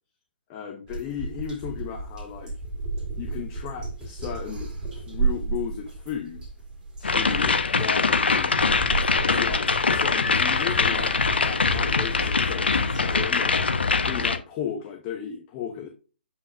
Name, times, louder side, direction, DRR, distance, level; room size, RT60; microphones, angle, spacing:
voice 1, 0.5-2.5 3.2-6.4 7.0-8.5 9.3-11.1 11.4-13.6 14.0-15.9, left 8 dB, 25° left, 3 dB, 1.0 m, -35 dB
sound 1, 0.9-13.3, right 3 dB, 10° right, 2.8 m, -33 dB
sound 2, 7.0-14.4, left 4 dB, 70° left, 0.9 m, -23 dB
7.9 x 5.6 x 2.5 m, 0.35 s
figure-of-eight pair, 135°, 6 cm